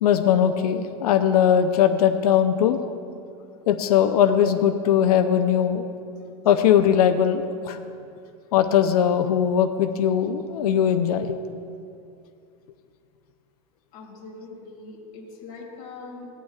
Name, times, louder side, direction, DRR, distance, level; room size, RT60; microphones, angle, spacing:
voice 1, 0.0-2.8 3.7-5.8 6.4-7.8 8.5-11.4, left 9 dB, 85° left, 7 dB, 0.6 m, -20 dB
voice 2, 13.9-16.3, left 3 dB, 45° left, -3 dB, 2.4 m, -41 dB
16.5 x 9.1 x 2.4 m, 2.5 s
supercardioid pair, 140°, 19 cm